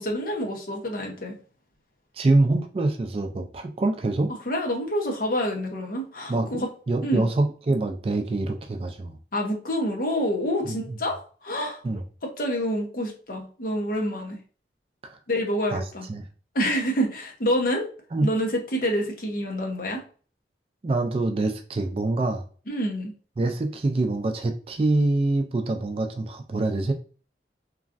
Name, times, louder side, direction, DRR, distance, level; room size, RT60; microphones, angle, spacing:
voice 1, 0.0-1.4 4.3-6.7 7.0-7.2 9.3-11.8 12.2-14.4 15.3-16.0 16.5-17.9 18.2-20.0 22.7-23.1, equal, 50° left, 1 dB, 0.8 m, -27 dB
voice 2, 2.2-4.3 6.3-9.1 10.6-11.0 11.8-12.0 15.0-15.2 15.7-15.8 16.1-16.3 18.1-18.3 20.8-22.4 23.4-26.9, right 2 dB, 35° right, 5 dB, 0.3 m, -25 dB
3.0 x 2.4 x 2.5 m, 0.40 s
head